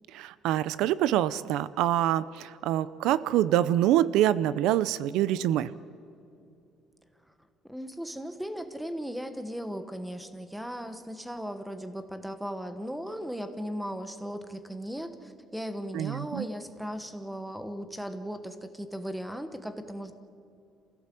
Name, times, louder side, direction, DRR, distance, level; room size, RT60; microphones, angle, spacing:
voice 1, 0.1-5.7 15.9-16.5, right 12 dB, 85° right, 17 dB, 0.6 m, -25 dB
voice 2, 7.7-20.1, equal, 5° right, 9 dB, 1.2 m, -37 dB
28.0 x 16.0 x 7.6 m, 2.6 s
cardioid pair, 170°, 0 cm